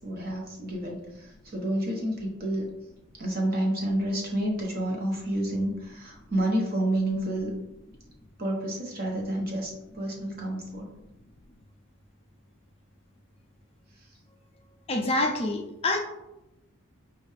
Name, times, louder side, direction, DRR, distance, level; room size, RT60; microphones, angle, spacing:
voice 1, 0.0-2.7 3.2-7.5 8.4-10.9 14.0-14.1, right 1 dB, 45° right, -1 dB, 0.9 m, -29 dB
voice 2, 14.9-16.0, left 2 dB, 30° left, 2 dB, 0.4 m, -26 dB
5.4 x 2.4 x 3.2 m, 0.91 s
head